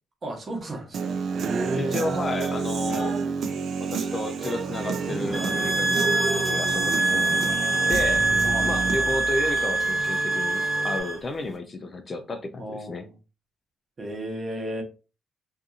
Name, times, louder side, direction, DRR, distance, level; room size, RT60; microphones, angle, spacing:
voice 1, 0.2-1.9 8.4-9.1 12.6-13.1 14.0-14.8, right 1 dB, 40° right, 1.1 m, -33 dB
Human voice / Guitar, 0.9-9.0, right 5 dB, 65° right, 0.3 m, -29 dB
voice 2, 1.8-3.2 3.8-7.6 7.9-8.3 8.6-13.1, left 2 dB, 35° left, 0.5 m, -32 dB
sound 1, 5.0-11.0, equal, 15° left, 1.0 m, -36 dB
sound 2, 5.3-11.2, right 2 dB, 15° right, 0.8 m, -24 dB
2.7 x 2.6 x 2.4 m
cardioid pair, 90°, 0 cm